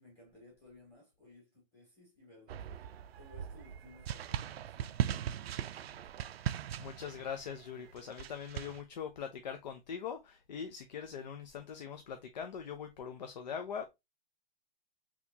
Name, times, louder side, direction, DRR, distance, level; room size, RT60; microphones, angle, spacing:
voice 1, 0.0-2.9 3.2-6.1, left 2 dB, 10° left, 2.0 m, -59 dB
sound 1, 2.5-8.8, right 10 dB, 85° right, 0.5 m, -39 dB
voice 2, 6.5-13.9, left 7 dB, 45° left, 0.5 m, -42 dB
4.1 x 2.9 x 2.7 m
hypercardioid pair, 165°, 30 cm